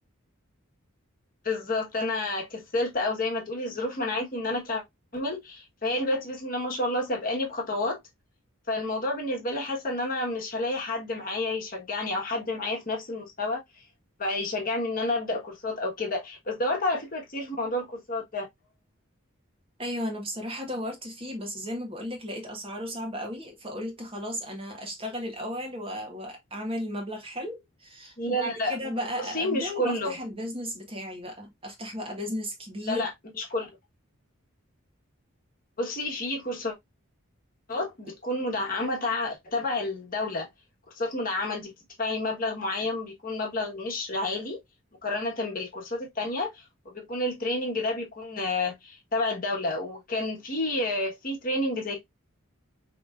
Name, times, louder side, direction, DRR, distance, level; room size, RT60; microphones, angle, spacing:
voice 1, 1.4-4.8 5.1-8.0 8.7-13.8 14.2-18.5 28.2-30.1 32.8-33.7 35.8-36.7 37.7-40.5 40.9-41.7 42.0-44.6 45.0-52.0, left 2 dB, 40° left, 1.2 m, -30 dB
voice 2, 19.8-33.0, equal, 25° right, 1.1 m, -35 dB
5.0 x 3.0 x 2.4 m
head